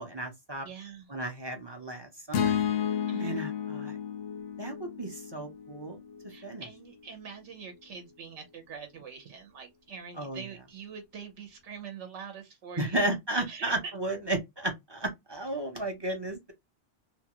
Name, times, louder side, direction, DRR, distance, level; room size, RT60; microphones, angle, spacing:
voice 1, 0.0-0.7 1.1-2.6 3.2-4.0 4.6-6.0 6.4-6.6 10.2-10.4 12.8-16.5, right 1 dB, 30° right, 0.5 m, -33 dB
voice 2, 0.6-1.1 3.1-3.4 6.3-13.0 13.5-13.7, right 6 dB, 75° right, 1.0 m, -44 dB
sound 1, 2.3-6.6, left 8 dB, 90° left, 1.0 m, -32 dB
2.9 x 2.3 x 2.8 m
omnidirectional pair, 1.2 m